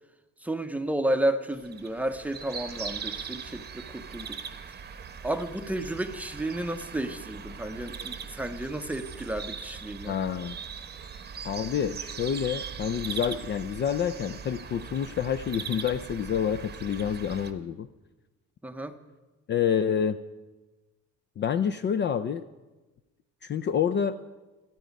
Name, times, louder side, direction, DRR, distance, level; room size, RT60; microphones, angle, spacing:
voice 1, 0.4-4.4 5.2-10.2 18.6-19.0, right 1 dB, 5° right, 7 dB, 0.6 m, -32 dB
sound 1, 1.6-17.5, right 6 dB, 30° right, 0.9 m, -40 dB
voice 2, 10.1-10.6 11.4-17.9 19.5-20.2 21.4-22.4 23.4-24.2, left 8 dB, 35° left, 12 dB, 0.4 m, -28 dB
27.0 x 9.1 x 5.2 m, 1.1 s
cardioid pair, 175°, 33 cm